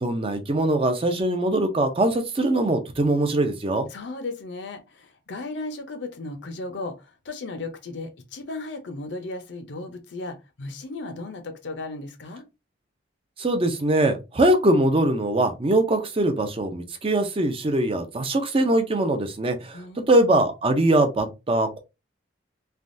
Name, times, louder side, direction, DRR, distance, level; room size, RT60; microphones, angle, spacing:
voice 1, 0.0-3.9 13.4-19.8 20.1-21.8, right 1 dB, 30° right, 0.4 m, -22 dB
voice 2, 3.9-12.4 19.7-20.2, left 2 dB, 65° left, 0.6 m, -35 dB
3.3 x 2.2 x 2.5 m
head